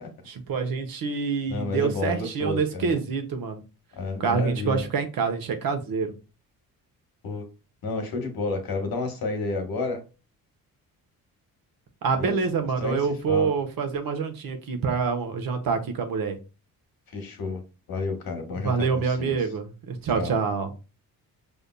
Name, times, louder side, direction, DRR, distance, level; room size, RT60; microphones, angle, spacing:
voice 1, 0.3-3.6 4.2-6.1 12.0-16.4 18.5-20.7, right 5 dB, 75° right, 1.0 m, -26 dB
voice 2, 1.5-2.9 4.0-4.9 7.2-7.4 7.8-10.0 12.2-12.4 12.8-13.0 13.3-13.5 17.1-17.6 17.9-19.4 20.1-20.3, left 3 dB, 75° left, 1.4 m, -30 dB
5.3 x 3.5 x 2.2 m
cardioid pair, 75°, 36 cm